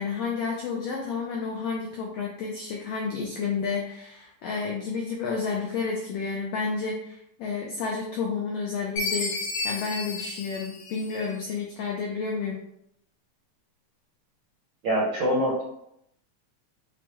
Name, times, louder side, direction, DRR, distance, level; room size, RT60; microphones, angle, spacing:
voice 1, 0.0-12.6, left 5 dB, 85° left, -2 dB, 1.4 m, -31 dB
Chime, 9.0-11.5, left 3 dB, 65° left, 2.6 m, -32 dB
voice 2, 14.8-15.6, equal, 75° right, -5 dB, 1.2 m, -24 dB
6.1 x 2.1 x 2.9 m, 0.76 s
omnidirectional pair, 3.5 m